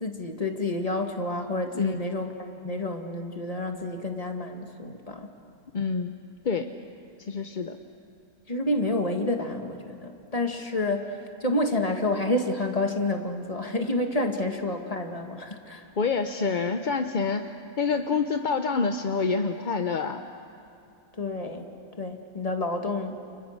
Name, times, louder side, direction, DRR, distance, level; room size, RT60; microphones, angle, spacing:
voice 1, 0.0-5.3 8.5-15.9 21.2-21.7 22.0-23.2, left 2 dB, 25° left, 4 dB, 1.9 m, -29 dB
voice 2, 5.7-6.2 6.4-6.7 7.3-7.8 16.0-20.2, left 4 dB, 40° left, 6 dB, 0.7 m, -27 dB
30.0 x 30.0 x 6.6 m, 2.6 s
omnidirectional pair, 1.6 m